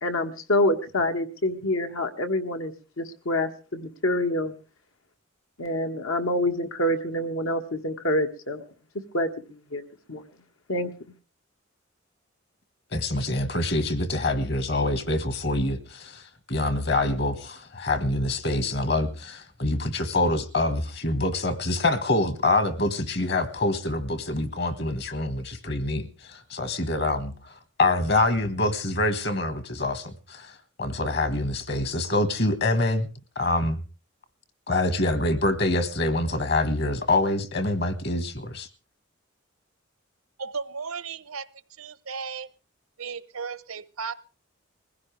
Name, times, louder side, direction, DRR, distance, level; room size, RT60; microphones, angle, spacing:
voice 1, 0.0-4.5 5.6-8.6 9.1-9.8 10.1-10.3 10.7-10.9, left 1 dB, 80° left, 6 dB, 1.7 m, -27 dB
voice 2, 12.9-16.2 16.5-33.1 33.3-33.8 34.7-38.7, left 2 dB, 50° left, 11 dB, 1.5 m, -26 dB
voice 3, 40.4-41.5 41.8-42.5 43.0-44.1, right 5 dB, 90° right, 16 dB, 0.9 m, -35 dB
21.5 x 15.5 x 3.3 m, 0.34 s
head